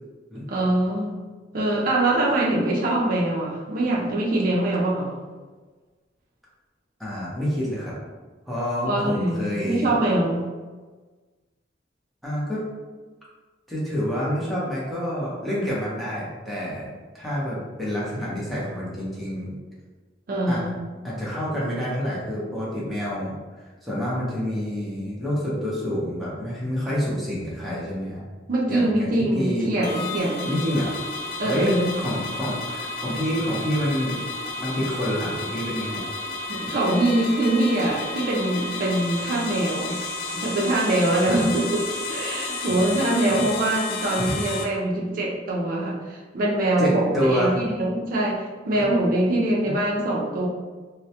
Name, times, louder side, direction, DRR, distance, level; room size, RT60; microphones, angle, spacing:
voice 1, 0.5-1.1 1.5-5.1 8.8-10.5 20.3-20.7 28.5-30.5 31.4-31.9 36.5-40.0 40.3-41.8 42.1-50.5, right 1 dB, 50° right, -4 dB, 0.4 m, -23 dB
voice 2, 7.0-7.9 8.5-9.9 12.2-12.6 13.7-19.5 20.5-20.6 21.0-23.3 23.8-28.2 28.7-29.7 30.5-30.9 31.4-34.2 34.6-36.0 41.3-41.4 43.3-43.4 44.2-44.4 46.8-47.6 48.7-48.8 49.7-49.8, equal, ahead, -8 dB, 0.6 m, -27 dB
sound 1, 29.8-44.6, left 3 dB, 55° left, 0.3 m, -32 dB
2.2 x 2.0 x 2.7 m, 1.3 s
head